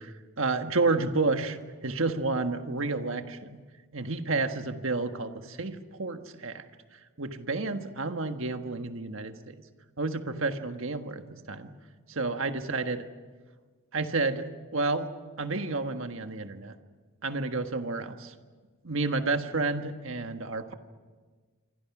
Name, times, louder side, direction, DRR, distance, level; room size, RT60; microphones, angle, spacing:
voice 1, 0.0-1.6 1.8-3.6 3.9-6.6 7.2-9.5 10.0-11.2 11.5-11.7 12.2-13.0 13.9-14.5 14.7-15.1 15.4-16.7 17.2-18.3 18.8-20.7, right 3 dB, 60° right, 7 dB, 1.5 m, -30 dB
27.0 x 25.5 x 6.1 m, 1.4 s
head